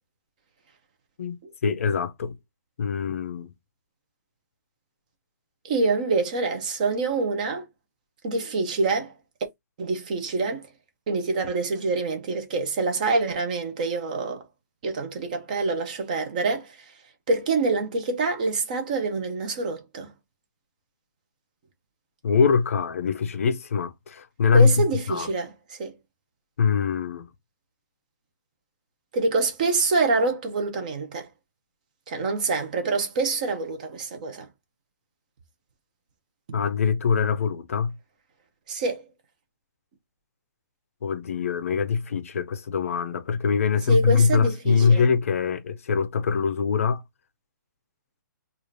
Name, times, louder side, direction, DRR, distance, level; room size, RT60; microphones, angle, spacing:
voice 1, 1.2-2.4 2.8-3.5 22.2-25.3 26.6-27.3 36.5-38.0 41.0-47.0, left 5 dB, 45° left, 0.5 m, -23 dB
voice 2, 5.6-7.7 8.2-9.1 9.8-10.7 11.1-14.4 14.8-16.9 17.3-20.1 24.5-25.9 29.1-31.3 32.1-34.5 38.7-39.1 43.9-45.1, right 3 dB, 25° right, 0.6 m, -26 dB
4.8 x 2.5 x 2.6 m
hypercardioid pair, 180°, 10 cm